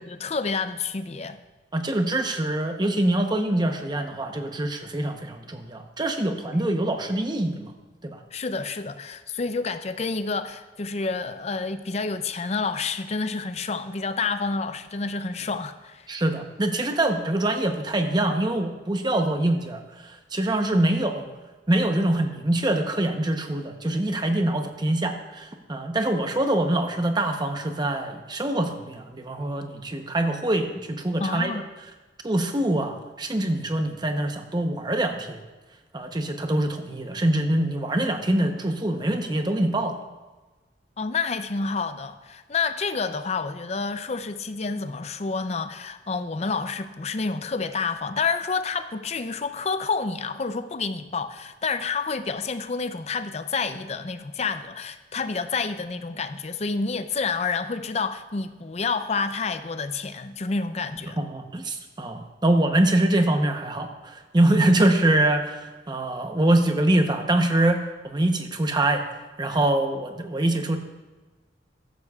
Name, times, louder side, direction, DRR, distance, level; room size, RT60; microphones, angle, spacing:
voice 1, 0.0-1.4 6.5-6.6 8.3-16.1 31.2-31.7 41.0-61.2, left 4 dB, 35° left, 11 dB, 0.5 m, -29 dB
voice 2, 1.7-7.7 8.0-8.2 16.1-21.2 21.7-31.6 32.2-35.4 35.9-40.0 61.2-69.0 69.4-70.8, right 1 dB, 25° right, 5 dB, 0.8 m, -24 dB
14.5 x 13.0 x 2.4 m, 1.2 s
head